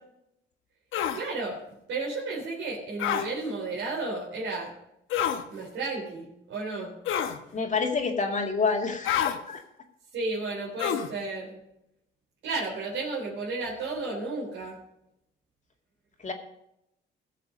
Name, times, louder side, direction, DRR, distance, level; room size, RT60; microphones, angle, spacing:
sound 1, 0.9-1.2 3.0-3.3 5.1-5.4 7.1-7.4 9.0-9.4 10.8-11.1, left 9 dB, 80° left, 1.1 m, -27 dB
voice 1, 1.1-1.6 1.9-4.7 5.5-6.9 10.1-11.6 12.4-14.8, right 3 dB, 75° right, -4 dB, 3.5 m, -33 dB
voice 2, 7.5-9.6 16.2-16.3, left 4 dB, 40° left, 3 dB, 2.3 m, -28 dB
16.5 x 6.8 x 5.3 m, 0.80 s
cardioid pair, 90°, 20 cm